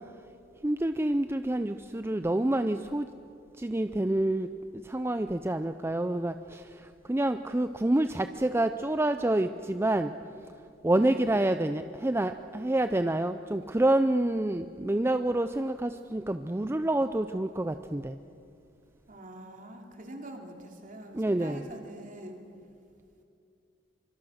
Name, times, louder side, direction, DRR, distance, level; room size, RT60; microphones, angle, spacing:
voice 1, 0.6-3.1 3.6-10.1 10.8-18.2 21.1-21.6, right 1 dB, 15° right, 9 dB, 0.5 m, -28 dB
voice 2, 10.9-11.3 19.1-22.4, right 1 dB, 45° right, 2 dB, 3.1 m, -45 dB
24.5 x 24.5 x 6.5 m, 2.5 s
head